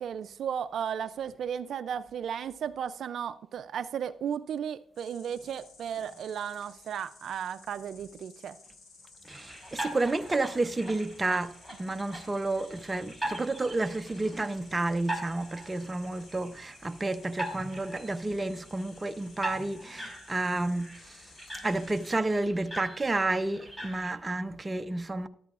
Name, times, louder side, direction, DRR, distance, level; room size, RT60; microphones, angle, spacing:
voice 1, 0.0-8.6, right 8 dB, 65° right, 0.4 m, -35 dB
Insect, 4.9-22.1, left 4 dB, 70° left, 5.0 m, -56 dB
voice 2, 9.2-25.3, right 2 dB, 20° right, 0.7 m, -31 dB
sound 1, 9.3-24.1, right 1 dB, 10° left, 3.9 m, -42 dB
13.0 x 12.5 x 2.4 m
cardioid pair, 90°, 0 cm